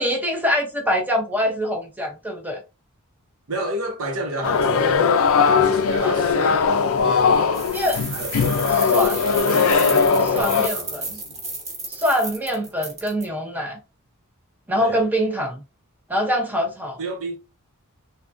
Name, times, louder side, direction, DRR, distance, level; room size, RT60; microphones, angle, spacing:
voice 1, 0.0-2.6 6.0-6.5 7.7-8.0 8.8-9.2 10.3-11.2 11.9-13.8 14.7-15.6 16.1-17.0, equal, 10° right, 0.7 m, -24 dB
voice 2, 3.5-7.7 8.1-11.4 14.8-15.0 17.0-17.4, right 1 dB, 65° right, 0.8 m, -32 dB
sound 1, 4.4-10.7, left 5 dB, 65° left, 0.4 m, -19 dB
sound 2, 7.5-13.2, right 2 dB, 30° right, 1.2 m, -32 dB
3.6 x 2.2 x 2.5 m
head